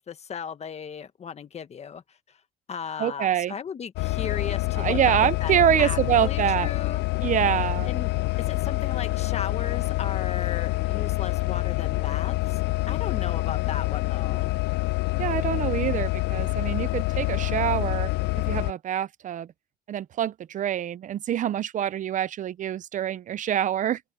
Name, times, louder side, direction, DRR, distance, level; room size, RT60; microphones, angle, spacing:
voice 1, 0.0-2.4 2.7-5.1 5.4-5.5 5.8-7.0 7.9-8.1 8.4-12.6 12.9-14.5, left 7 dB, 40° left, 1.7 m, -36 dB
voice 2, 3.0-3.5 4.8-6.7 7.2-7.9 15.2-18.1 18.4-19.5 19.9-24.0, right 10 dB, 50° right, 0.6 m, -25 dB
sound 1, 4.0-18.7, left 21 dB, 80° left, 0.5 m, -26 dB
open air
cardioid pair, 110°, 17 cm